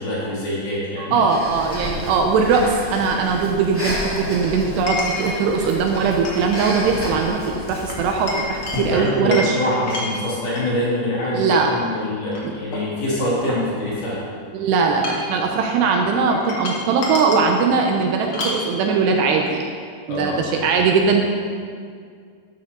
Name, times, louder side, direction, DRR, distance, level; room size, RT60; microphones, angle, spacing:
voice 1, 0.0-1.2 8.7-14.2 20.1-20.6, left 1 dB, 55° left, -8 dB, 4.9 m, -24 dB
voice 2, 1.0-9.6 11.3-11.8 12.4-12.5 14.5-19.6 20.1-21.2, right 5 dB, 80° right, 2 dB, 2.7 m, -20 dB
Breathing, 1.3-9.0, left 1 dB, 10° left, 0.5 m, -31 dB
Chink clink, 4.9-5.4 5.9-6.7 7.0-7.2 7.9-10.7 11.2-11.8 12.3-12.4 12.7-14.1 14.8-15.4 16.3-17.5 18.3-18.7, left 2 dB, 90° left, 1.1 m, -29 dB
12.5 x 11.5 x 3.9 m, 2.1 s
omnidirectional pair, 5.3 m